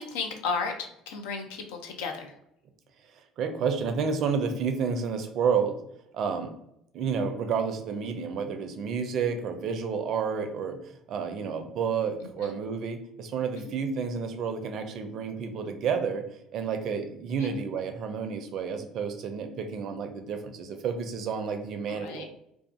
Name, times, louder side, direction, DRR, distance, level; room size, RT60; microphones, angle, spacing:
voice 1, 0.0-2.3 12.4-12.5 13.6-13.7 17.4-17.5 21.9-22.2, left 4 dB, 75° left, 4 dB, 0.4 m, -34 dB
voice 2, 3.4-5.8 6.1-6.5 6.9-10.8 11.1-16.2 16.5-22.2, right 6 dB, 55° right, 6 dB, 0.4 m, -30 dB
2.3 x 2.3 x 2.4 m, 0.77 s
hypercardioid pair, 60°, 0 cm